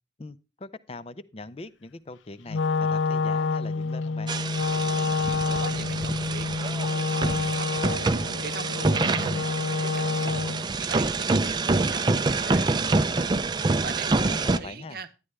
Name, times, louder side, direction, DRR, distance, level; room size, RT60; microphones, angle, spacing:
voice 1, 0.2-4.3 14.1-15.0, left 2 dB, 30° left, 0.5 m, -41 dB
Wind instrument woodwind instrument, 2.5-10.7, left 4 dB, 85° left, 0.4 m, -28 dB
sound 1, 4.3-14.6, right 3 dB, 25° right, 0.4 m, -26 dB
voice 2, 5.1-10.3 10.7-15.1, right 4 dB, 55° right, 0.8 m, -42 dB
10.5 x 9.9 x 3.2 m
head